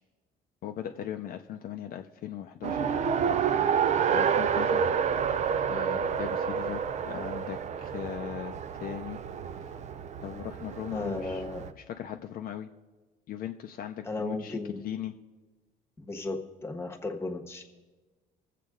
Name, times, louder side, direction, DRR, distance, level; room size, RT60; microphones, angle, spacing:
voice 1, 0.6-3.0 4.1-4.9 5.7-9.2 10.2-11.4 11.8-12.7 13.3-15.1, left 10 dB, 60° left, 5 dB, 0.6 m, -39 dB
Race car auto racing, 2.6-11.7, right 7 dB, 45° right, 0.6 m, -29 dB
voice 2, 10.9-11.6 14.0-14.8 16.0-17.6, left 2 dB, 15° left, 4 dB, 1.3 m, -35 dB
21.0 x 7.5 x 3.7 m, 1.2 s
cardioid pair, 110°, 17 cm